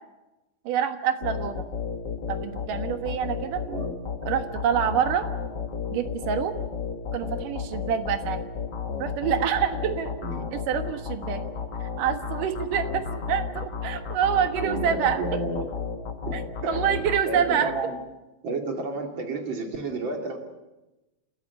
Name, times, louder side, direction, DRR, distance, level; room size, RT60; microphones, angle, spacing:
voice 1, 0.7-1.7 2.3-3.6 4.3-5.3 5.9-6.5 7.1-8.4 9.0-10.2 10.5-11.4 11.8-15.4 16.3-16.4 16.7-17.7, right 8 dB, 80° right, 8 dB, 3.0 m, -26 dB
sound 1, 1.2-17.8, left 6 dB, 45° left, 1.5 m, -33 dB
voice 2, 14.6-15.7 16.2-16.9 17.3-18.0 18.4-20.4, right 3 dB, 35° right, 4 dB, 3.1 m, -31 dB
29.5 x 13.5 x 9.5 m, 1.0 s
omnidirectional pair, 3.8 m